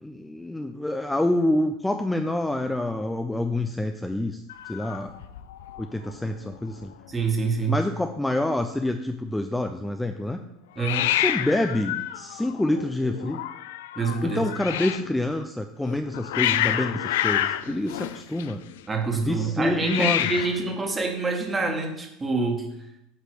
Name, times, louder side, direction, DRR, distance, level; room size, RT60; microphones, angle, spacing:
voice 1, 0.0-4.4 4.7-5.1 5.8-6.9 7.7-10.4 11.2-13.4 14.2-18.6 19.1-20.3, left 1 dB, 5° left, 6 dB, 0.5 m, -27 dB
Hiss, 4.5-5.8 6.1-6.6 6.8-6.9 7.1-7.8 10.8-15.1 15.8-18.8 19.7-20.7, left 12 dB, 80° left, 0.4 m, -29 dB
voice 2, 7.1-7.7 10.7-11.1 13.9-14.4 18.9-22.7, right 4 dB, 20° right, 3 dB, 1.6 m, -26 dB
7.8 x 3.2 x 6.2 m, 0.82 s
hypercardioid pair, 95°, 0 cm